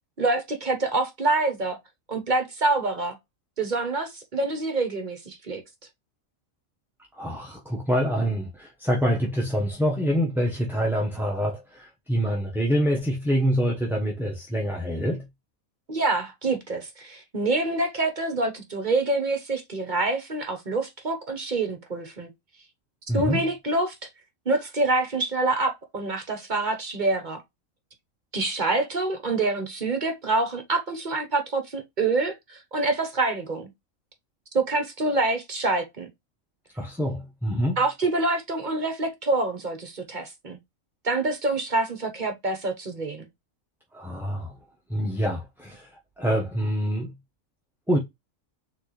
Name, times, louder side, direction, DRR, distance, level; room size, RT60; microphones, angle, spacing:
voice 1, 0.2-1.8 2.1-3.2 3.6-5.6 15.9-22.3 23.1-23.9 24.5-27.4 28.3-33.7 34.5-36.1 37.8-40.6 41.0-43.3, right 2 dB, 40° right, 1.0 m, -26 dB
voice 2, 7.1-15.2 23.1-23.4 36.8-37.8 43.9-44.5 44.9-45.9 46.2-47.1 47.9-48.0, equal, ahead, 0.9 m, -26 dB
4.3 x 3.9 x 3.1 m
omnidirectional pair, 1.4 m